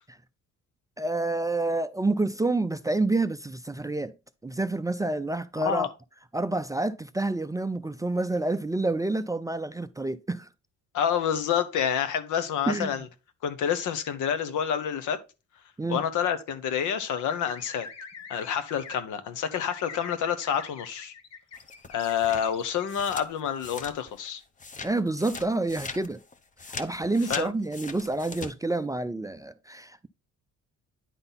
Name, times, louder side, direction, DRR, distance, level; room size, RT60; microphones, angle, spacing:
voice 1, 1.0-4.1 4.4-5.9 6.3-10.5 12.7-12.9 15.8-16.0 24.8-26.2 26.8-30.1, right 2 dB, 10° right, 0.3 m, -28 dB
voice 2, 5.6-5.9 10.9-13.1 13.4-15.2 15.9-17.9 18.3-21.1 21.9-24.4 27.3-27.5, left 8 dB, 80° left, 1.0 m, -28 dB
sound 1, 17.1-19.0 19.5-22.9, left 5 dB, 60° left, 1.2 m, -44 dB
sound 2, 21.5-24.3 24.6-28.5, left 4 dB, 25° left, 0.7 m, -40 dB
9.8 x 3.9 x 3.9 m
cardioid pair, 90°, 30 cm